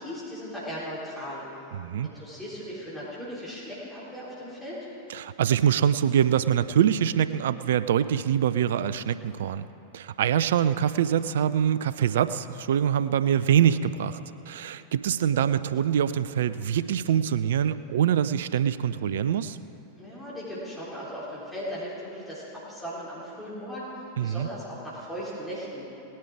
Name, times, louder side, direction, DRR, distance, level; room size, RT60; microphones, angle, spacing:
voice 1, 0.0-1.4 2.0-4.8 20.0-23.9 24.2-25.8, equal, 5° left, -9 dB, 3.8 m, -37 dB
voice 2, 1.7-2.1 5.1-9.7 9.9-14.2 14.5-19.6 24.2-24.5, right 9 dB, 60° right, 14 dB, 0.4 m, -24 dB
18.5 x 10.5 x 4.8 m, 2.9 s
figure-of-eight pair, 90°, 0 cm